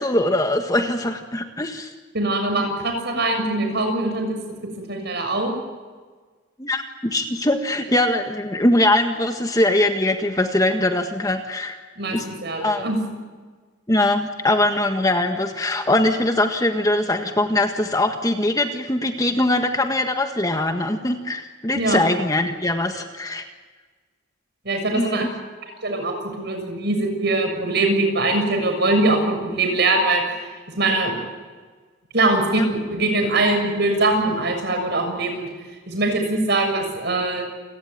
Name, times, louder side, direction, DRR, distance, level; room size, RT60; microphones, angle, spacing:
voice 1, 0.0-1.9 6.6-11.8 12.1-12.3 12.6-13.0 13.9-23.4 24.9-25.3 32.5-32.7, left 1 dB, 20° left, 5 dB, 1.6 m, -22 dB
voice 2, 2.1-4.4 4.9-5.5 12.0-13.0 21.7-22.0 24.6-25.3 25.8-30.2 30.8-31.2 32.1-35.5 35.9-37.4, right 2 dB, 55° right, 5 dB, 6.8 m, -22 dB
28.5 x 18.0 x 9.5 m, 1.4 s
head